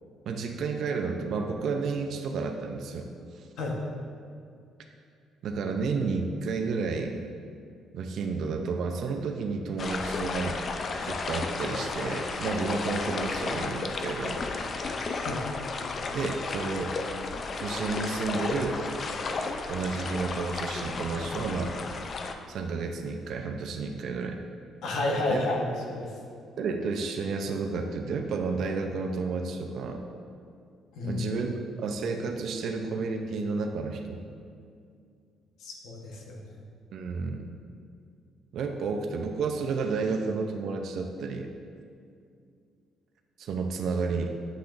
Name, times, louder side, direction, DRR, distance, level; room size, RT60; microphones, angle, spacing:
voice 1, 0.3-3.5 5.4-7.2 7.9-10.6 11.0-14.4 16.1-16.9 17.6-18.8 19.7-21.7 22.5-24.4 25.3-25.6 26.6-30.0 31.0-34.2 36.9-37.5 38.5-41.5 43.4-44.3, right 4 dB, 60° right, 3 dB, 0.5 m, -31 dB
sound 1, 9.8-22.3, left 3 dB, 40° left, 0.4 m, -33 dB
voice 2, 24.8-26.1 31.0-31.2 35.6-36.4, left 2 dB, 75° left, -1 dB, 1.1 m, -30 dB
8.4 x 5.9 x 2.5 m, 2.4 s
cardioid pair, 130°, 0 cm